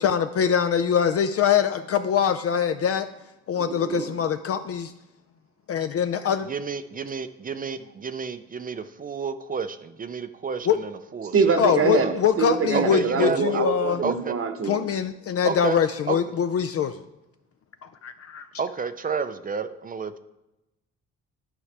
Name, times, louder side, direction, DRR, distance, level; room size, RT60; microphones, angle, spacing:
voice 1, 0.0-3.1 3.5-4.9 5.7-6.5 10.7-10.8 11.6-14.0 14.7-17.0 17.8-18.5, left 8 dB, 50° left, 9 dB, 0.4 m, -23 dB
voice 2, 3.5-4.2 11.3-14.8, right 5 dB, 45° right, 7 dB, 1.0 m, -25 dB
voice 3, 6.4-12.1 12.7-13.6 14.0-14.3 15.4-15.8 16.1-16.2 18.6-20.2, right 5 dB, 30° right, 11 dB, 0.4 m, -31 dB
11.0 x 4.7 x 3.3 m, 0.95 s
cardioid pair, 90°, 30 cm